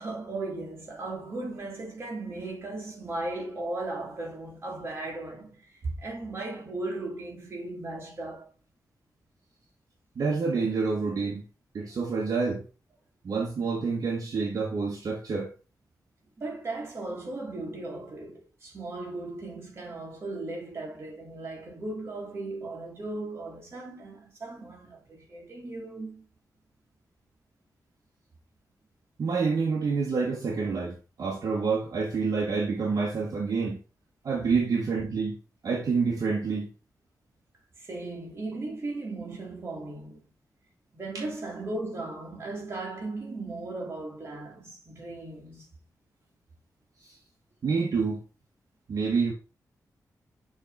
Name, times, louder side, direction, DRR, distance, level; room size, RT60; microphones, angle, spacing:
voice 1, 0.0-8.5 16.4-26.2 34.4-34.5 37.8-40.2 40.9-45.7, right 2 dB, 40° right, 2.6 m, -37 dB
voice 2, 10.1-11.4 11.7-12.6 13.2-15.5 29.2-33.8 34.2-35.4 35.6-36.7 41.1-41.2 47.0-47.1 47.6-48.2 48.9-49.3, right 4 dB, 60° right, 1.4 m, -28 dB
6.9 x 3.6 x 4.0 m
wide cardioid pair, 165°, 7 cm